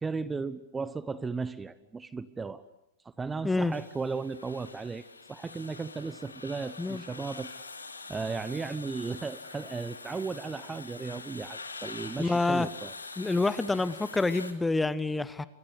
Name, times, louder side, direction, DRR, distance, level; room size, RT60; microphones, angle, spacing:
voice 1, 0.0-2.6 3.2-7.5 8.1-12.9, right 4 dB, 15° right, 16 dB, 1.0 m, -35 dB
sound 1, 3.7-14.5, left 4 dB, 85° left, 2.4 m, -45 dB
voice 2, 12.2-12.7 13.2-15.5, left 3 dB, 10° left, 16 dB, 1.2 m, -27 dB
27.0 x 24.5 x 8.3 m, 0.81 s
figure-of-eight pair, 100°, 0 cm